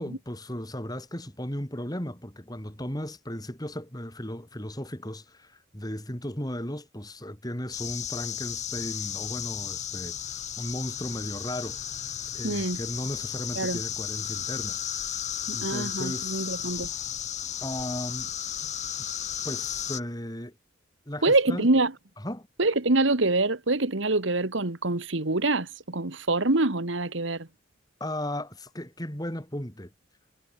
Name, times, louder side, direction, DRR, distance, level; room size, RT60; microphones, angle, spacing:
voice 1, 0.0-11.8 12.3-14.8 15.5-16.5 17.6-18.3 18.6-18.7 19.4-20.5 21.1-21.7 22.2-22.5 28.0-29.9, left 1 dB, 20° left, 4.2 m, -36 dB
sound 1, 7.7-20.0, left 9 dB, 35° left, 2.7 m, -34 dB
voice 2, 12.4-12.8 13.5-13.8 15.5-16.9 21.2-21.9 22.6-27.5, right 2 dB, 70° right, 1.7 m, -25 dB
head